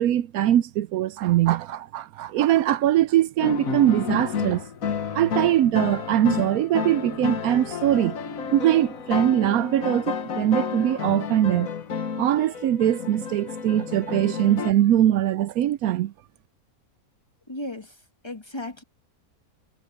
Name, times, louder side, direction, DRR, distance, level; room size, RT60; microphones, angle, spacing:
voice 1, 0.0-4.7 5.1-8.2 8.5-11.7 12.2-16.1, right 12 dB, 75° right, 1.0 m, -22 dB
sound 1, 3.4-14.7, left 6 dB, 65° left, 1.7 m, -31 dB
voice 2, 17.5-18.0 18.2-18.8, left 1 dB, 20° left, 1.5 m, -35 dB
omnidirectional pair, 1.6 m